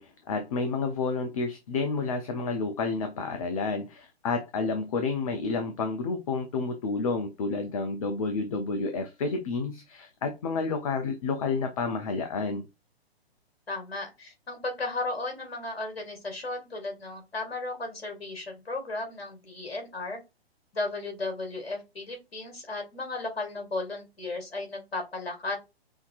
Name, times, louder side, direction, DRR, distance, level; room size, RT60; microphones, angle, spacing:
voice 1, 0.0-12.7, left 4 dB, 35° left, 0.6 m, -30 dB
voice 2, 13.7-20.2 20.7-25.6, left 2 dB, 70° left, 2.1 m, -35 dB
5.7 x 2.7 x 2.5 m
figure-of-eight pair, 120°, 31 cm